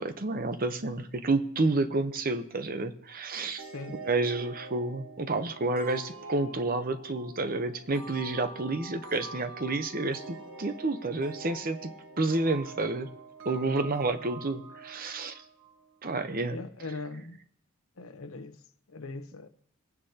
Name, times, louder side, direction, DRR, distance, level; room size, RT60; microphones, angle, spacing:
voice 1, 0.0-3.6 4.1-11.9 12.2-13.1 13.4-15.4 16.0-16.6, right 2 dB, 40° right, 0.8 m, -30 dB
voice 2, 3.6-4.0 16.5-17.4 18.0-18.6 18.9-19.5, left 3 dB, 75° left, 0.9 m, -40 dB
sound 1, 3.6-16.0, right 3 dB, 75° right, 1.4 m, -45 dB
27.0 x 9.5 x 2.8 m
head